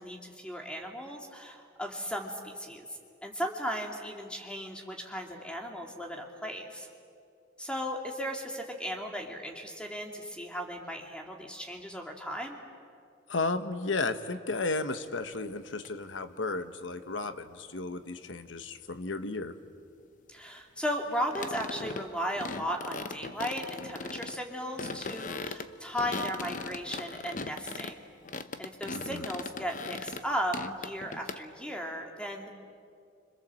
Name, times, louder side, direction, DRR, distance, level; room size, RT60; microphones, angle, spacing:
voice 1, 0.0-2.9 3.2-6.9 7.6-12.6 20.3-28.1 28.6-32.5, equal, 5° left, 1 dB, 2.5 m, -36 dB
voice 2, 13.3-19.5 28.9-29.2, left 3 dB, 85° left, 9 dB, 1.1 m, -33 dB
sound 1, 14.5-14.6 15.9-16.0 21.3-22.1 22.4-24.4 24.7-28.0 28.2-30.3 30.5-31.4, left 3 dB, 45° left, 0.8 m, -39 dB
29.5 x 26.0 x 7.6 m, 2.4 s
head